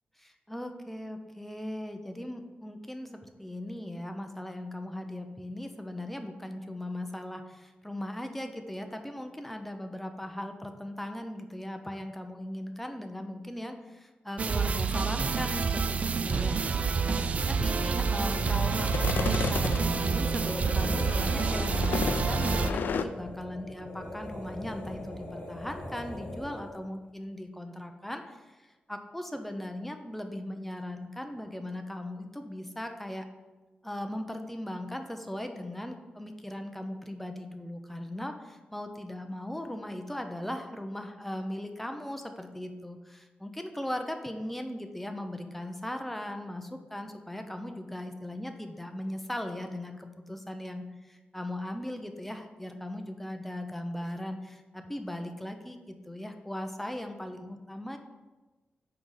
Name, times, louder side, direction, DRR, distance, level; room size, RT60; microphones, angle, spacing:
voice 1, 0.2-17.2 17.5-33.3 33.8-58.0, left 1 dB, 5° left, 6 dB, 0.6 m, -38 dB
sound 1, 14.4-22.7, right 5 dB, 45° right, 0.3 m, -28 dB
sound 2, 17.6-23.0, left 6 dB, 75° left, 0.3 m, -35 dB
sound 3, 19.5-26.8, left 1 dB, 30° left, 1.6 m, -42 dB
5.9 x 5.3 x 4.8 m, 1.2 s
wide cardioid pair, 145°, 3 cm